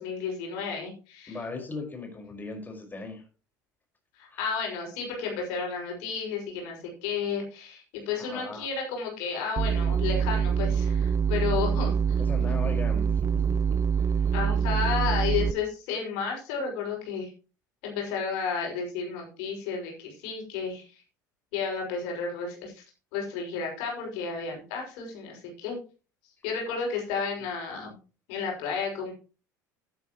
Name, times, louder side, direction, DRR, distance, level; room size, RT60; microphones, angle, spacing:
voice 1, 0.0-1.4 4.1-12.2 12.5-12.6 14.3-17.3 17.8-21.0 21.5-22.8 23.1-25.8 26.4-27.9 28.3-29.1, left 5 dB, 65° left, 0 dB, 6.0 m, -32 dB
voice 2, 1.3-3.2 4.3-4.4 8.2-8.7 12.2-13.1 13.3-13.8 14.2-14.3 27.7-27.9, left 3 dB, 20° left, 2 dB, 5.1 m, -38 dB
sound 1, 9.6-15.5, right 7 dB, 30° right, 0.6 m, -25 dB
12.0 x 12.0 x 3.1 m, 0.34 s
hypercardioid pair, 70°, 10 cm